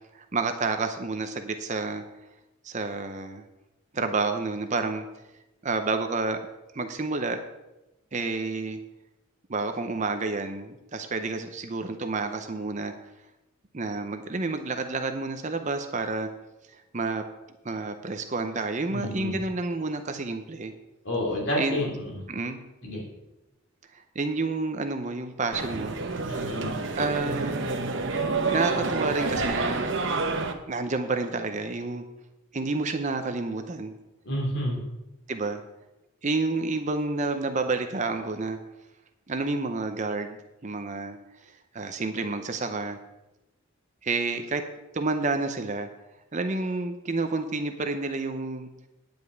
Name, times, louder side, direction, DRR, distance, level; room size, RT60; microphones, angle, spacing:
voice 1, 0.1-2.0 2.6-3.4 3.9-5.1 5.6-6.4 6.7-7.4 8.1-8.8 9.5-12.9 13.7-16.3 16.9-17.2 17.6-20.7 21.6-21.8 22.3-22.6 23.9-26.0 26.3-26.4 26.9-27.7 28.5-29.9 30.7-32.0 32.5-33.9 35.3-35.6 36.2-38.6 39.3-41.2 41.4-43.0 44.0-44.6 44.9-45.9 46.3-48.7, right 3 dB, 35° right, 7 dB, 0.6 m, -29 dB
voice 2, 18.9-19.4 21.0-22.2 22.8-23.0 26.3-26.8 34.2-34.8, left 1 dB, 55° left, -4 dB, 3.0 m, -29 dB
sound 1, 25.5-30.5, right 3 dB, 60° right, 1.0 m, -28 dB
9.8 x 5.2 x 7.9 m, 0.99 s
head